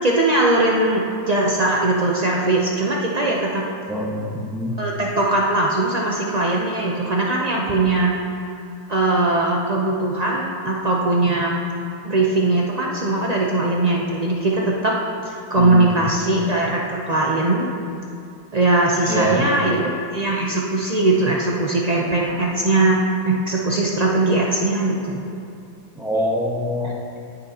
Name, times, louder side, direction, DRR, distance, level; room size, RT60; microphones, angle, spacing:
voice 1, 0.0-3.6 4.8-8.1 8.9-11.5 12.0-14.9 15.2-17.7 18.5-19.8 20.1-23.0 23.3-25.2 26.8-26.9, right 2 dB, 75° right, -3 dB, 0.3 m, -20 dB
voice 2, 3.9-4.7 15.6-15.8 19.1-19.5 26.0-26.9, equal, ahead, -2 dB, 0.8 m, -24 dB
19.5 x 6.8 x 2.8 m, 2.4 s
omnidirectional pair, 1.9 m